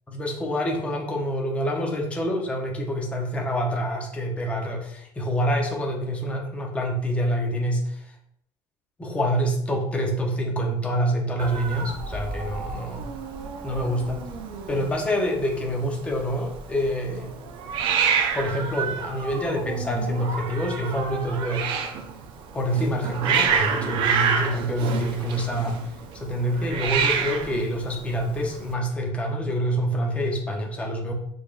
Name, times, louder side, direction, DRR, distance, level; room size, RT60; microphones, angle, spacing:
voice 1, 0.1-8.1 9.0-13.0 13.6-14.2 14.7-17.3 18.3-21.9 22.5-25.8 26.1-31.1, equal, 10° left, 0 dB, 0.6 m, -26 dB
Hiss, 11.4-28.7, right 6 dB, 50° right, 0.5 m, -29 dB
4.0 x 3.3 x 2.4 m, 0.72 s
cardioid pair, 160°, 11 cm